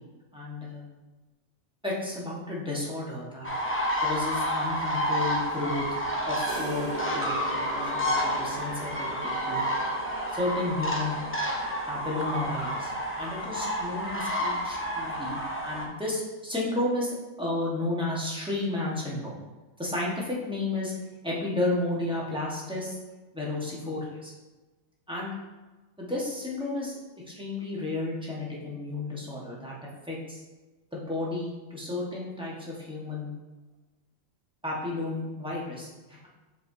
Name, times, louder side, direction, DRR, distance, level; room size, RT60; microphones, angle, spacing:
voice 1, 0.3-0.8 1.8-3.5 4.0-5.9 6.2-6.9 7.1-9.6 10.3-11.2 11.9-19.4 19.8-20.9 21.2-23.0 23.3-24.3 25.1-25.3 26.0-26.9 27.3-29.7 30.1-30.4 30.9-33.3 34.6-36.3, left 2 dB, 5° right, -6 dB, 1.3 m, -32 dB
sound 1, 3.4-15.9, equal, 15° left, 0.4 m, -30 dB
sound 2, 6.5-14.0, right 2 dB, 35° right, 0.8 m, -41 dB
7.5 x 4.7 x 2.7 m, 1.2 s
omnidirectional pair, 1.4 m